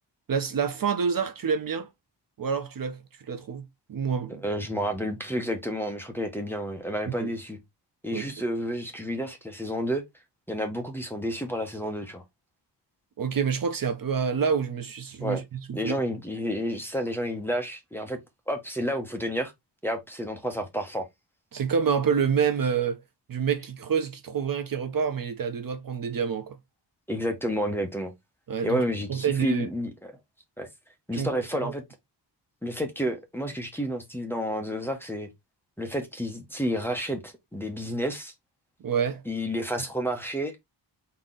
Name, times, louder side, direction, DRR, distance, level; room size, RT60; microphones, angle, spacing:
voice 1, 0.3-1.9 2.4-3.0 3.3-4.4 7.1-7.3 8.1-8.3 13.2-15.9 21.5-23.0 23.3-26.6 28.5-28.8 29.1-29.7 31.1-31.7 38.8-39.2, right 6 dB, 50° right, 0.6 m, -27 dB
voice 2, 4.4-7.6 8.0-10.0 10.5-12.2 15.2-15.4 15.7-18.2 18.5-19.5 19.8-21.0 27.1-28.1 28.6-30.1 30.6-30.7 31.1-31.8 32.6-35.3 35.8-38.3 39.3-40.5, equal, 5° left, 0.7 m, -30 dB
3.9 x 2.9 x 3.7 m
wide cardioid pair, 170°, 43 cm